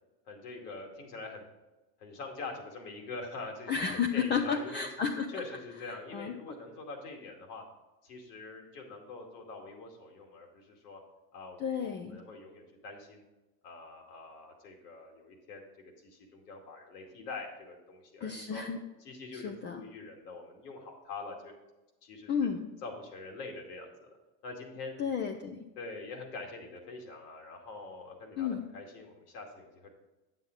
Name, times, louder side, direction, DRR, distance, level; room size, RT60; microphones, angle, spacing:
voice 1, 0.3-1.4 2.0-3.7 4.1-4.9 5.3-7.6 8.0-11.0 11.3-13.2 13.6-15.7 16.0-18.6 19.0-21.5 22.0-22.3 22.8-24.2 24.4-24.9 25.8-29.9, left 3 dB, 85° left, 2 dB, 2.4 m, -44 dB
voice 2, 3.7-5.4 6.1-6.3 11.6-12.1 18.2-18.8 19.3-19.8 22.3-22.7 25.0-25.6 28.4-28.6, left 6 dB, 25° left, 3 dB, 0.5 m, -32 dB
9.6 x 7.4 x 3.9 m, 1.0 s
supercardioid pair, 125°, 46 cm